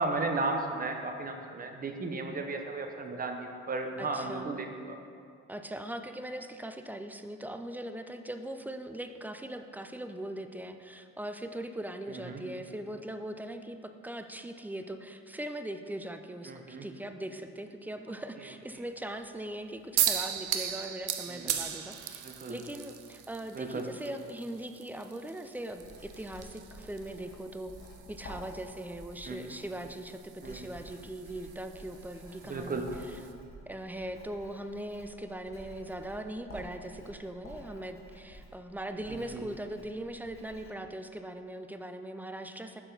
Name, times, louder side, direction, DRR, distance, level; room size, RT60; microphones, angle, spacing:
voice 1, 0.0-5.0 12.1-12.4 16.4-16.9 21.3-21.5 22.2-22.6 23.5-23.9 29.3-29.5 30.4-30.7 32.4-32.9 39.1-39.4, right 3 dB, 30° right, 4 dB, 0.8 m, -35 dB
voice 2, 4.0-4.5 5.5-22.2 22.5-27.7 28.1-33.2 33.7-42.8, right 1 dB, 5° right, 7 dB, 0.3 m, -40 dB
sound 1, 20.0-33.3, right 10 dB, 80° right, 0.6 m, -38 dB
Writing, 25.8-40.7, equal, 45° left, 1.6 m, -51 dB
6.7 x 6.1 x 3.9 m, 2.3 s
cardioid pair, 90°, 30 cm